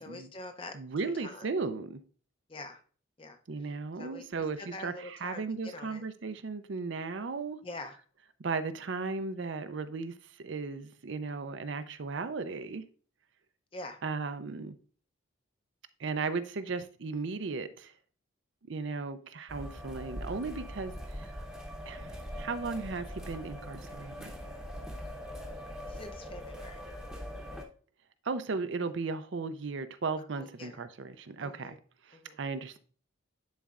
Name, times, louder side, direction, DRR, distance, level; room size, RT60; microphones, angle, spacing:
voice 1, 0.0-0.8 1.0-1.5 2.5-2.8 3.2-3.7 4.0-6.0 7.6-8.0 13.7-14.0 25.9-26.8 30.4-30.8 31.4-31.8 32.1-32.4, left 2 dB, 25° left, 0.6 m, -45 dB
voice 2, 0.7-2.0 3.5-7.6 8.4-10.1 10.4-12.8 14.0-14.7 16.0-17.9 18.7-21.4 21.9-24.3 28.2-31.8 32.1-32.8, right 4 dB, 60° right, 0.5 m, -36 dB
sound 1, 19.5-27.6, equal, ahead, 0.8 m, -42 dB
10.5 x 4.2 x 2.4 m
head